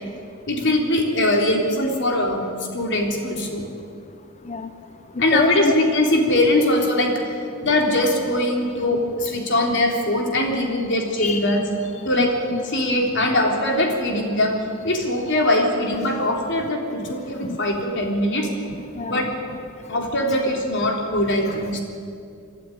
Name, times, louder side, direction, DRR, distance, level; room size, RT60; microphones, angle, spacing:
voice 1, 0.5-2.5 2.7-3.7 5.2-7.2 7.6-11.6 12.0-12.3 12.7-14.6 14.8-18.5 19.1-19.4 19.9-21.8, left 1 dB, 55° left, 1 dB, 3.6 m, -21 dB
voice 2, 5.3-5.7 11.2-11.6 12.2-12.6 17.0-17.1 17.4-17.6 19.0-19.3 21.5-21.6, left 3 dB, 35° left, 9 dB, 0.7 m, -27 dB
27.5 x 12.0 x 9.9 m, 2.4 s
head